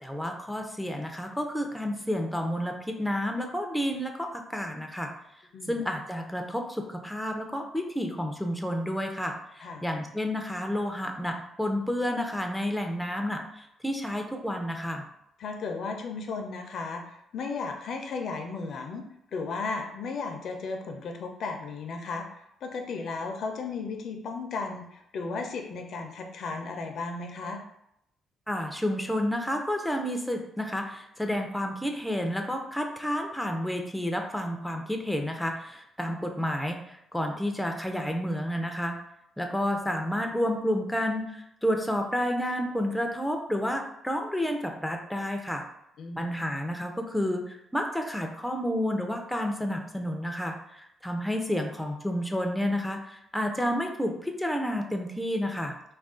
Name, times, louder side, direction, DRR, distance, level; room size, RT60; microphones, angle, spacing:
voice 1, 0.0-5.1 5.7-15.1 28.5-36.8 37.1-39.0 39.4-45.6 46.2-55.7, equal, 5° left, 3 dB, 0.4 m, -30 dB
voice 2, 15.4-17.0 17.3-19.0 19.3-22.2 22.6-27.6 46.0-46.3, left 4 dB, 65° left, 4 dB, 0.4 m, -35 dB
2.4 x 2.2 x 3.6 m, 0.78 s
cardioid pair, 90°, 0 cm